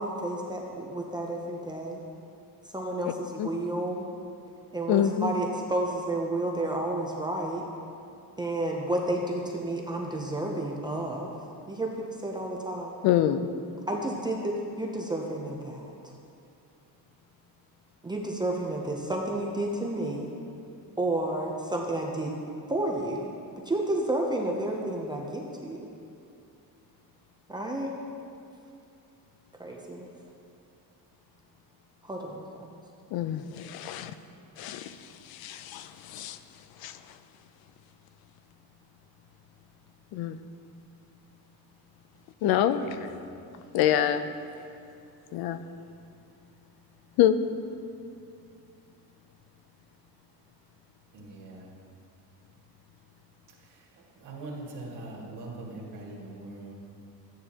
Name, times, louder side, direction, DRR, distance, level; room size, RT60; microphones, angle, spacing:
voice 1, 0.0-2.0 2.7-4.1 4.7-7.6 8.4-11.3 11.7-11.9 12.2-12.9 13.9-16.1 18.0-20.3 21.0-22.3 22.7-23.3 23.7-25.9 27.5-27.9 29.6-30.1 32.0-32.5, right 1 dB, 10° right, -1 dB, 0.5 m, -31 dB
voice 2, 4.9-5.3 13.0-13.5 33.1-34.1 34.6-34.9 35.3-36.4 36.8-37.0 40.1-40.4 42.4-43.1 43.7-44.3 45.3-45.6 47.2-47.4, left 10 dB, 70° left, 11 dB, 0.6 m, -26 dB
voice 3, 51.1-51.7 54.2-56.8, right 2 dB, 55° right, -3 dB, 1.9 m, -41 dB
13.0 x 9.5 x 2.9 m, 2.6 s
cardioid pair, 180°, 38 cm